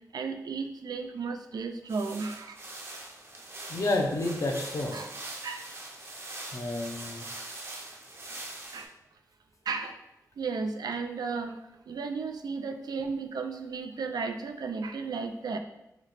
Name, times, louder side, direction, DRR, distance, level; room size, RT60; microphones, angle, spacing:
voice 1, 0.1-2.6 4.9-5.7 8.7-8.9 9.7-10.0 10.4-11.6 11.9-15.6, right 4 dB, 90° right, 6 dB, 0.4 m, -34 dB
sound 1, 1.9-8.9, right 2 dB, 40° right, 0.6 m, -42 dB
voice 2, 3.7-4.9 6.5-7.3, left 2 dB, 50° left, 2 dB, 0.6 m, -30 dB
3.0 x 3.0 x 4.1 m, 0.87 s
wide cardioid pair, 125°, 7 cm